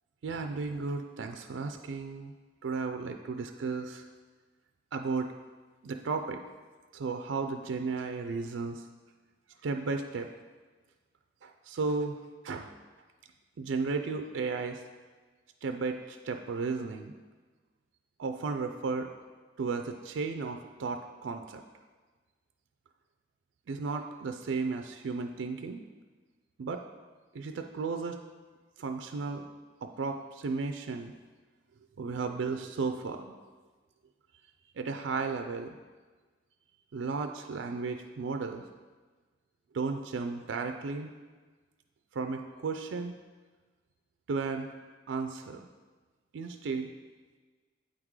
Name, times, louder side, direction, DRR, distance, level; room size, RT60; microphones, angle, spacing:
voice 1, 0.2-2.3 2.6-4.1 4.9-5.3 5.8-6.4 6.9-8.8 9.6-10.3 11.4-12.2 12.4-12.7 13.6-14.8 15.6-17.1 18.2-19.1 19.6-21.6 23.7-25.8 26.6-26.8 27.3-28.2 28.8-29.4 29.8-31.1 32.0-33.4 34.8-35.7 36.9-38.6 39.7-41.1 42.1-43.1 44.3-44.7 45.1-45.7 46.3-46.9, right 4 dB, 80° right, 6 dB, 0.4 m, -34 dB
8.5 x 3.7 x 4.7 m, 1.4 s
head